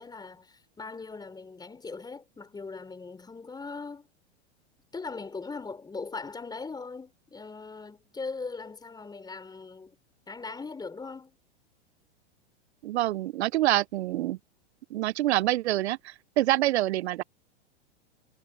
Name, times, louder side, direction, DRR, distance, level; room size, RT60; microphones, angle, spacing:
voice 1, 0.0-4.1 4.9-10.0 10.3-11.4, left 4 dB, 10° left, 5.0 m, -40 dB
voice 2, 12.8-14.4 14.9-17.2, right 15 dB, 75° right, 0.5 m, -26 dB
hypercardioid pair, 110°, 34 cm